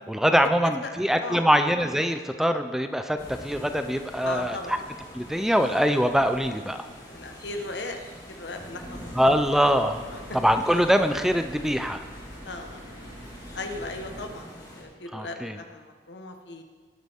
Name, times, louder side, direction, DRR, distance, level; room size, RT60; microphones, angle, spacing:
voice 1, 0.1-4.6 5.1-6.9 9.1-10.0 10.3-12.0 15.1-15.6, equal, ahead, 8 dB, 0.4 m, -23 dB
voice 2, 0.6-0.9 1.2-1.5 4.1-4.8 7.1-8.0 8.3-9.4 10.1-10.4 12.4-12.8 13.5-14.5 14.7-16.6, left 2 dB, 85° left, 5 dB, 1.2 m, -37 dB
sound 1, 3.2-14.8, equal, 20° left, 3.1 m, -45 dB
sound 2, 8.8-14.3, equal, 35° right, 1.9 m, -45 dB
18.5 x 8.3 x 3.6 m, 1.5 s
head